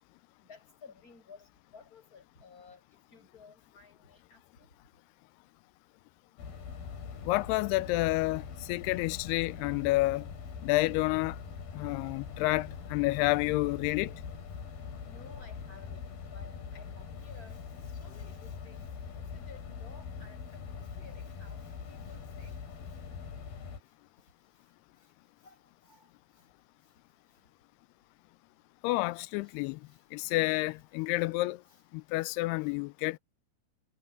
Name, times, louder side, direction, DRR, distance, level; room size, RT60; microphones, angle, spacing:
voice 1, 0.5-1.5 1.7-2.8 3.1-4.7 15.1-17.6 17.9-18.9 19.3-21.6 21.9-22.6 25.4-25.5 25.9-26.0, left 4 dB, 20° left, 8.3 m, -55 dB
sound 1, 6.4-23.8, left 6 dB, 70° left, 5.7 m, -43 dB
voice 2, 7.3-10.3 10.6-11.4 11.7-14.1 28.8-29.8 30.1-31.6 31.9-33.2, left 20 dB, 90° left, 2.6 m, -29 dB
omnidirectional pair, 4.6 m